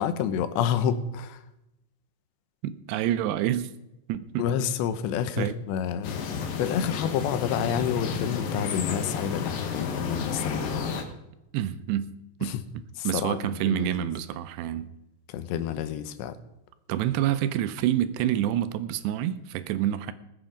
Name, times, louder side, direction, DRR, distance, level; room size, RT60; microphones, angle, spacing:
voice 1, 0.0-1.4 4.4-6.2 6.6-10.8 12.4-12.6 13.0-13.4 13.7-14.1 15.3-16.3, left 8 dB, 85° left, 3.1 m, -29 dB
voice 2, 2.6-3.7 4.1-4.5 5.4-5.6 11.5-12.1 12.4-14.9 16.9-20.1, right 12 dB, 85° right, 2.7 m, -28 dB
sound 1, 6.0-11.0, left 6 dB, 65° left, 2.8 m, -31 dB
19.5 x 8.2 x 5.1 m
omnidirectional pair, 4.9 m